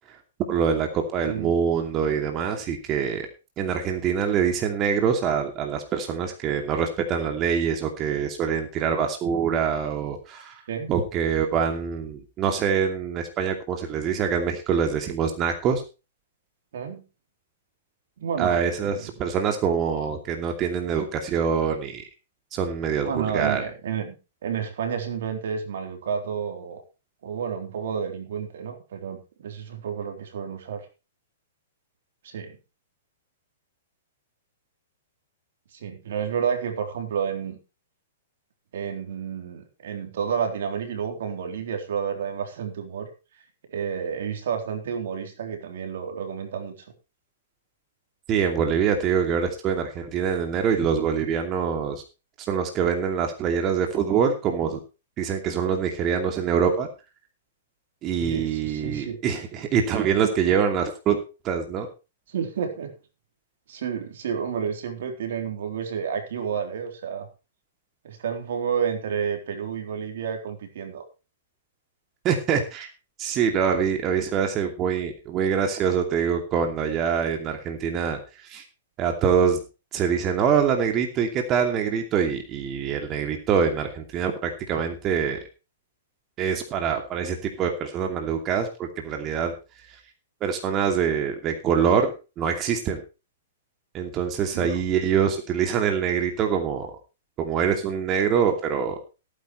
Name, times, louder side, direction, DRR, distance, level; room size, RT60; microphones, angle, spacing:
voice 1, 0.5-3.3 3.6-10.6 10.9-15.8 18.4-22.0 22.5-23.6 48.3-52.0 52.4-54.8 55.2-56.9 58.0-61.2 61.4-61.9 72.2-72.9 73.2-78.6 79.0-79.6 79.9-85.4 86.4-89.5 90.4-92.1 92.4-93.0 93.9-96.9 97.4-99.0, right 7 dB, 30° right, 4 dB, 2.7 m, -24 dB
voice 2, 1.2-1.6 10.7-10.9 16.7-17.0 18.2-19.1 23.0-24.2 24.4-26.8 27.2-30.9 32.2-32.6 35.7-37.6 38.7-43.1 43.7-46.7 58.2-59.2 62.3-62.9 63.7-67.3 68.0-71.0 94.5-94.8, right 7 dB, 65° right, 5 dB, 3.7 m, -30 dB
17.5 x 9.7 x 3.2 m, 0.30 s
hypercardioid pair, 120°, 0 cm